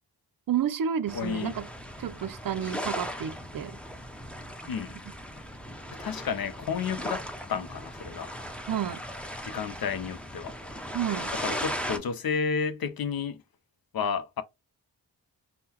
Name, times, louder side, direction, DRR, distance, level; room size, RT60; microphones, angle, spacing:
voice 1, 0.5-1.7 2.0-3.8 8.6-9.0 10.9-11.3, right 9 dB, 55° right, 0.5 m, -30 dB
voice 2, 1.1-1.5 4.7-5.0 5.9-7.2 7.5-8.3 9.4-10.6 11.4-13.4 13.9-14.4, left 6 dB, 55° left, 0.6 m, -31 dB
sound 1, 1.1-12.0, equal, 5° left, 0.6 m, -37 dB
3.6 x 2.2 x 2.8 m
cardioid pair, 65°, 43 cm